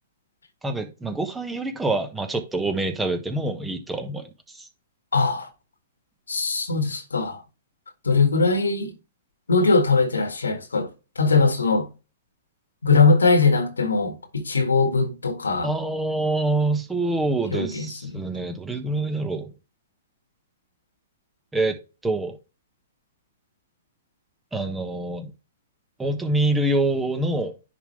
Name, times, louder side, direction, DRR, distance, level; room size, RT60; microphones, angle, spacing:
voice 1, 0.6-4.3 4.5-4.7 15.6-19.5 21.5-21.8 22.0-22.4 24.5-25.3 26.0-27.5, right 2 dB, 10° right, 1.3 m, -25 dB
voice 2, 5.1-5.5 6.3-7.4 8.0-8.9 9.5-10.9 11.1-11.9 12.8-15.7 17.5-18.2, left 4 dB, 85° left, 1.6 m, -21 dB
10.0 x 3.8 x 3.2 m
hypercardioid pair, 120°, 0 cm